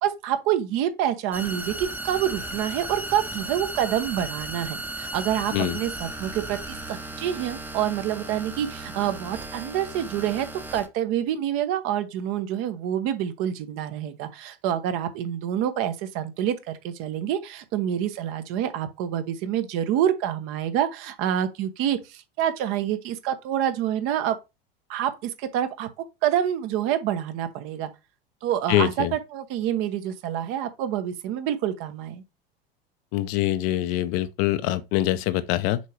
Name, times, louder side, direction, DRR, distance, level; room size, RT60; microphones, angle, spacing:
voice 1, 0.0-24.4 24.9-25.9 26.2-27.9 28.4-32.2, right 10 dB, 45° right, 1.1 m, -27 dB
sound 1, 1.3-10.9, right 1 dB, 5° right, 0.9 m, -36 dB
voice 2, 28.7-29.1 33.1-35.8, left 14 dB, 45° left, 0.7 m, -24 dB
6.7 x 4.6 x 3.4 m
figure-of-eight pair, 80°, 30 cm